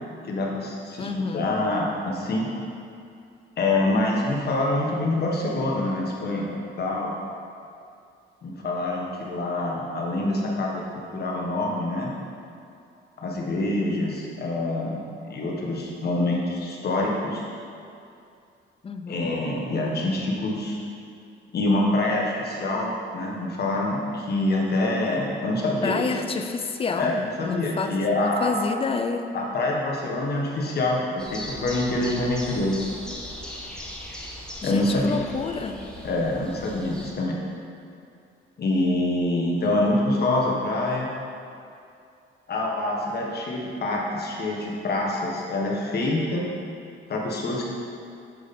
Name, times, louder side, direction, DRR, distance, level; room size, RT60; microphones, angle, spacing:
voice 1, 0.2-1.1 1.3-2.5 3.6-6.5 6.8-7.2 8.4-12.1 13.2-15.0 15.2-17.5 19.1-20.8 21.5-26.0 27.0-28.5 29.3-32.9 34.6-35.1 36.0-37.4 38.6-41.1 42.5-46.4 47.1-47.6, left 2 dB, 55° left, -2 dB, 1.4 m, -26 dB
voice 2, 1.0-1.6 18.8-19.4 25.8-29.3 34.6-35.9, left 4 dB, 30° left, 7 dB, 0.5 m, -29 dB
sound 1, 31.2-37.1, left 1 dB, 5° left, 1.1 m, -39 dB
7.4 x 4.9 x 4.2 m, 2.5 s
cardioid pair, 90°, 20 cm